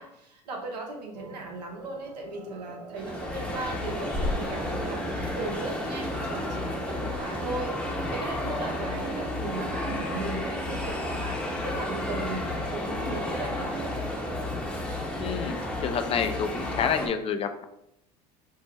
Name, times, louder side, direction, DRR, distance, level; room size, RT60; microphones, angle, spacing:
voice 1, 0.0-14.0, right 2 dB, 90° right, 1 dB, 0.9 m, -37 dB
sound 1, 1.1-6.6, right 5 dB, 70° right, 0.5 m, -46 dB
sound 2, 2.9-17.1, left 1 dB, 5° left, 0.8 m, -32 dB
voice 2, 15.2-17.6, left 7 dB, 30° left, 7 dB, 0.4 m, -29 dB
4.2 x 2.0 x 3.3 m, 0.80 s
hypercardioid pair, 85°, 21 cm